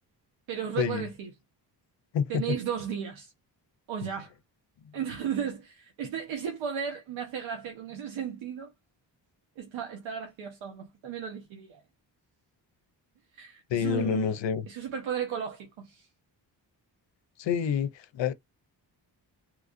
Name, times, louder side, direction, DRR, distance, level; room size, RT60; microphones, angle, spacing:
voice 1, 0.5-1.3 2.3-3.3 3.9-4.3 4.9-8.7 9.6-11.8 13.3-14.3 14.7-16.1, right 8 dB, 90° right, 0.9 m, -35 dB
voice 2, 13.7-14.7 17.4-18.3, left 7 dB, 70° left, 0.6 m, -28 dB
3.2 x 2.4 x 2.4 m
cardioid pair, 65°, 46 cm